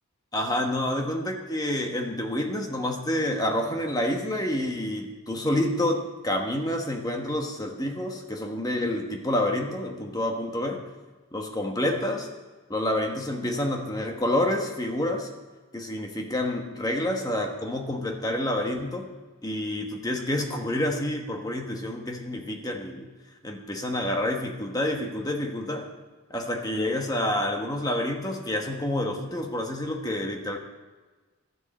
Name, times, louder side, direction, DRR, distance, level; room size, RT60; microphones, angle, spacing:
voice 1, 0.3-10.9 11.3-12.3 12.7-15.3 15.7-19.1 19.4-23.1 23.4-25.9 26.3-30.6, left 1 dB, 15° left, 3 dB, 1.2 m, -28 dB
12.5 x 7.2 x 7.5 m, 1.3 s
head